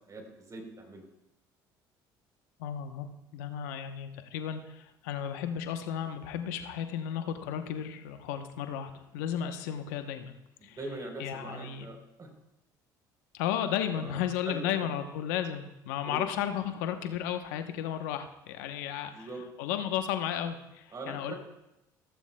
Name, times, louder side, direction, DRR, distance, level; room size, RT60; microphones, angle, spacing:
voice 1, 0.1-1.1 10.6-12.3 13.9-14.9 16.0-16.2 19.0-19.4 20.9-21.4, right 2 dB, 35° right, 3 dB, 3.7 m, -42 dB
voice 2, 2.6-3.1 3.3-10.3 10.6-10.8 11.2-11.9 13.3-19.3 19.6-21.3, left 9 dB, 85° left, 7 dB, 0.9 m, -34 dB
16.0 x 14.5 x 2.2 m, 0.90 s
supercardioid pair, 75°, 10 cm